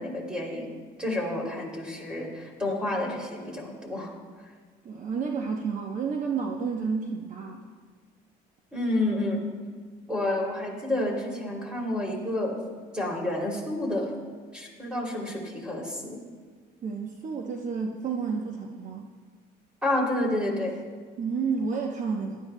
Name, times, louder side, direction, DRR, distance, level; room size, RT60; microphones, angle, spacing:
voice 1, 0.0-4.1 8.7-9.5 10.1-12.6 12.9-14.1 14.5-16.3 19.8-20.8, left 1 dB, 5° right, -1 dB, 2.9 m, -29 dB
voice 2, 4.8-7.7 16.8-19.1 21.2-22.4, right 5 dB, 50° right, 2 dB, 0.9 m, -30 dB
18.0 x 12.0 x 2.2 m, 1.5 s
cardioid pair, 110°, 17 cm